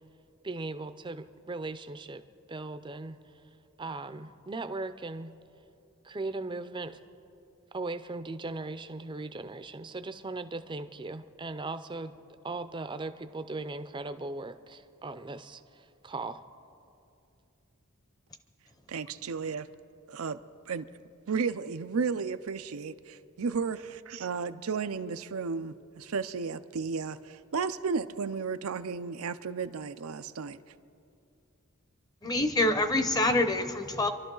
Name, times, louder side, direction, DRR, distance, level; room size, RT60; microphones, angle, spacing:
voice 1, 0.4-2.2 2.5-3.2 3.8-5.3 6.0-7.0 7.7-12.2 12.4-16.4, right 3 dB, 20° right, 11 dB, 0.5 m, -38 dB
voice 2, 18.9-19.7 20.1-20.4 20.7-20.9 21.3-30.6, right 5 dB, 90° right, 11 dB, 0.5 m, -33 dB
voice 3, 32.2-34.1, left 2 dB, 20° left, 8 dB, 0.7 m, -26 dB
27.0 x 12.0 x 3.9 m, 2.6 s
head